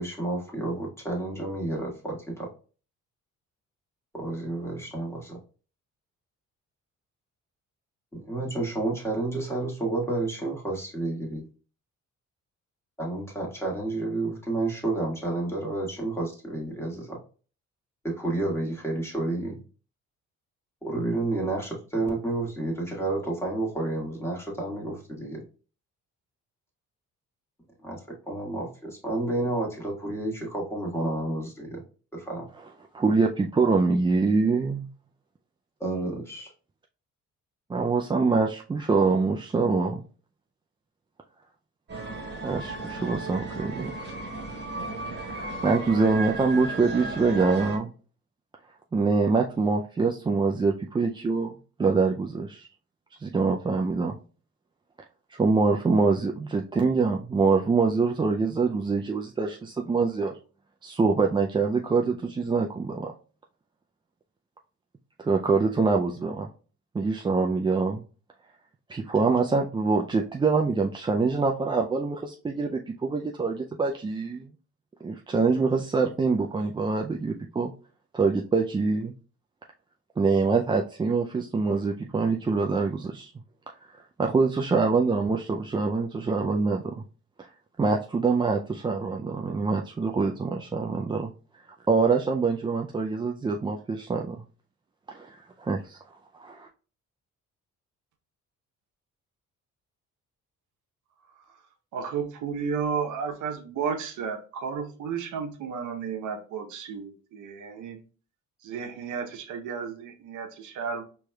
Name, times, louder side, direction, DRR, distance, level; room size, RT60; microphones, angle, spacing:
voice 1, 0.0-2.5 4.1-5.4 8.1-11.4 13.0-17.2 18.0-19.6 20.8-25.4 27.8-31.8 32.1-32.4 35.8-36.5, right 2 dB, 10° left, -2 dB, 1.5 m, -30 dB
voice 2, 32.9-34.9 37.7-40.0 42.4-43.9 45.1-47.9 48.9-51.5 51.8-52.7 53.2-54.2 55.3-60.4 60.8-63.1 65.2-66.5 66.9-68.0 68.9-74.5 75.0-77.7 78.1-79.1 80.2-83.3 83.9-87.0 87.4-87.5 87.8-91.3 91.9-94.4 95.1-96.0 96.3-96.7, right 4 dB, 15° right, 1 dB, 0.3 m, -25 dB
sound 1, 41.9-47.8, right 2 dB, 35° right, 1.5 m, -35 dB
voice 3, 101.9-108.0 108.6-111.0, right 6 dB, 80° right, 4 dB, 0.9 m, -33 dB
4.7 x 3.1 x 2.2 m, 0.38 s
cardioid pair, 90°, 30 cm